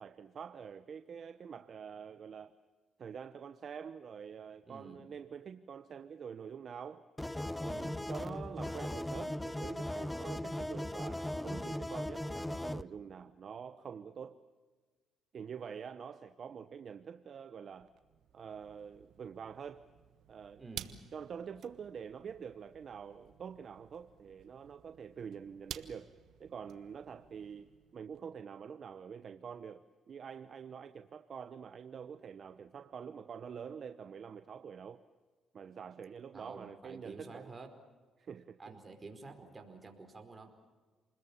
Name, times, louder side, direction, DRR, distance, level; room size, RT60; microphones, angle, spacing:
voice 1, 0.0-2.5 3.0-7.0 7.6-14.4 15.3-17.9 18.3-19.8 20.3-20.6 21.1-26.1 26.4-35.0 35.5-37.5 38.2-38.7, right 7 dB, 55° right, 11 dB, 0.9 m, -46 dB
voice 2, 4.7-5.0 7.6-8.0 20.6-21.0 36.3-37.7 38.6-40.5, right 3 dB, 30° right, 5 dB, 4.7 m, -50 dB
sound 1, 7.2-12.8, left 1 dB, 10° left, 0.8 m, -38 dB
sound 2, 17.7-28.2, right 10 dB, 75° right, 1.3 m, -53 dB
29.0 x 21.0 x 7.2 m, 1.4 s
cardioid pair, 90°, 0 cm